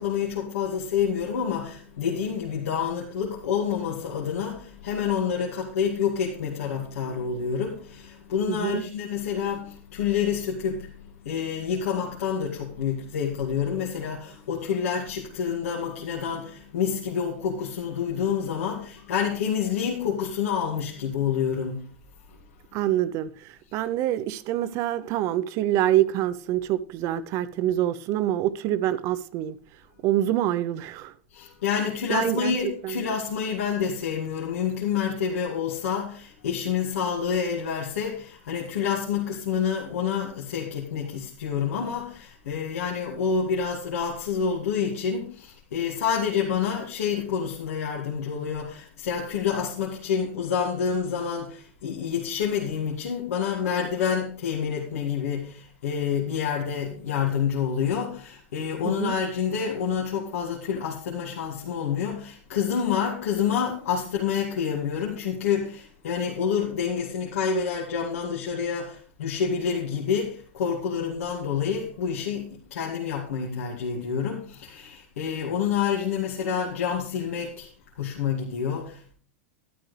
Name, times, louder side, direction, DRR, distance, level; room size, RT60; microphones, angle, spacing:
voice 1, 0.0-21.9 31.3-77.7 78.0-79.1, left 7 dB, 85° left, 2.4 m, -28 dB
voice 2, 8.5-8.8 22.7-29.6 30.0-31.1 32.1-32.6 32.8-33.0 58.8-59.2, right 13 dB, 45° right, 0.8 m, -26 dB
12.0 x 11.5 x 3.4 m
supercardioid pair, 135°, 7 cm